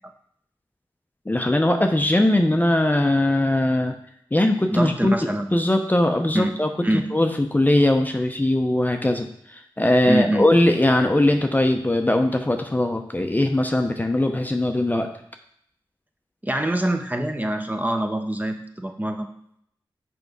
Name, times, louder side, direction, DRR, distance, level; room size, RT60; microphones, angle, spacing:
voice 1, 1.3-4.0 4.3-6.7 7.1-15.1, left 1 dB, 20° left, 5 dB, 0.7 m, -20 dB
voice 2, 4.7-5.6 6.3-6.6 6.8-7.1 10.1-10.5 16.4-19.3, right 1 dB, 20° right, 5 dB, 0.9 m, -24 dB
6.0 x 4.6 x 5.4 m, 0.69 s
cardioid pair, 45°, 9 cm